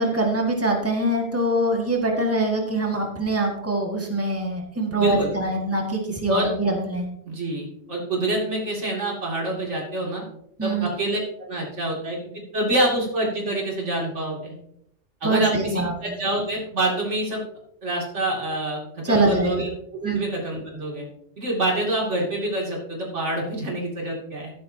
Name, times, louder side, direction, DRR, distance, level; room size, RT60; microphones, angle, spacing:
voice 1, 0.0-7.1 10.6-10.9 15.2-16.1 19.0-19.7 20.0-20.3, right 1 dB, 10° right, 0 dB, 1.8 m, -24 dB
voice 2, 4.9-5.3 6.3-6.5 7.2-10.2 10.6-12.2 12.5-14.5 15.2-17.4 17.8-21.0 21.4-24.5, right 1 dB, 90° right, -2 dB, 2.9 m, -26 dB
12.5 x 10.5 x 2.8 m, 0.75 s
omnidirectional pair, 1.2 m